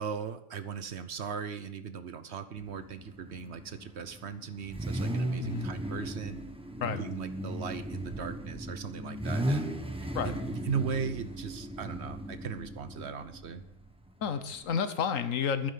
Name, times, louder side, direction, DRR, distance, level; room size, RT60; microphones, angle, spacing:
voice 1, 0.0-6.4 6.8-13.6, right 6 dB, 60° right, 11 dB, 1.0 m, -38 dB
Car / Idling / Accelerating revving vroom, 2.6-14.6, right 1 dB, 5° right, 1.0 m, -37 dB
voice 2, 14.2-15.7, left 7 dB, 70° left, 11 dB, 1.3 m, -31 dB
12.0 x 10.0 x 5.7 m, 0.75 s
omnidirectional pair, 1.4 m